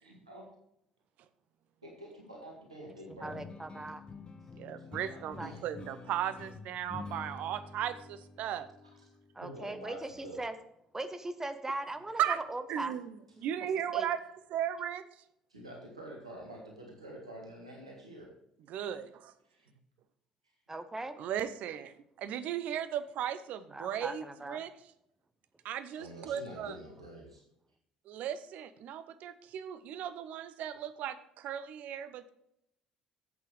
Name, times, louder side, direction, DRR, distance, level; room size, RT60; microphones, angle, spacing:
voice 1, 0.0-0.5 1.8-3.4 4.8-5.6 9.4-10.4 15.5-18.3 19.5-19.7 26.0-27.4, right 1 dB, 85° right, -1 dB, 1.9 m, -47 dB
voice 2, 3.1-4.0 5.3-5.5 9.3-10.5 10.9-12.9 13.9-14.1 20.7-21.2 23.7-24.6, right 2 dB, 15° right, 9 dB, 1.1 m, -39 dB
sound 1, 3.2-9.8, left 4 dB, 30° left, 1.1 m, -48 dB
voice 3, 4.6-8.7 12.2-12.4 12.7-13.1 13.4-15.0 18.7-19.3 21.2-24.7 25.6-26.8 28.1-32.3, right 10 dB, 55° right, 12 dB, 0.8 m, -36 dB
12.0 x 8.3 x 3.3 m, 0.77 s
figure-of-eight pair, 55°, 3 cm